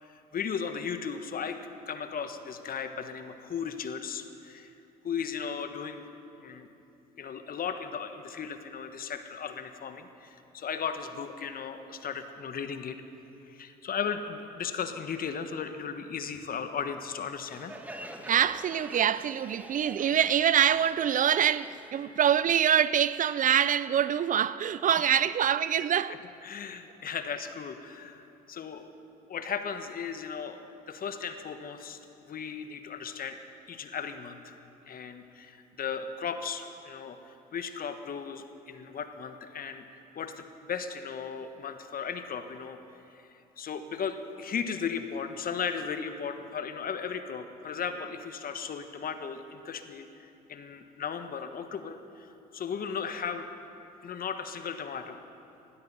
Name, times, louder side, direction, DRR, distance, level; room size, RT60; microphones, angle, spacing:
voice 1, 0.0-1.6 1.9-4.7 5.0-6.1 6.4-6.7 7.2-13.0 13.5-17.7 26.4-28.9 29.3-30.6 30.9-33.4 33.7-34.5 34.9-42.8 43.6-50.1 50.5-53.5 54.0-55.2, left 6 dB, 45° left, 1.3 m, -36 dB
Crowd, 17.5-22.9, right 1 dB, 10° right, 1.6 m, -47 dB
voice 2, 18.3-26.2, right 9 dB, 45° right, 0.4 m, -25 dB
19.0 x 12.5 x 5.6 m
hypercardioid pair, 60°, 20 cm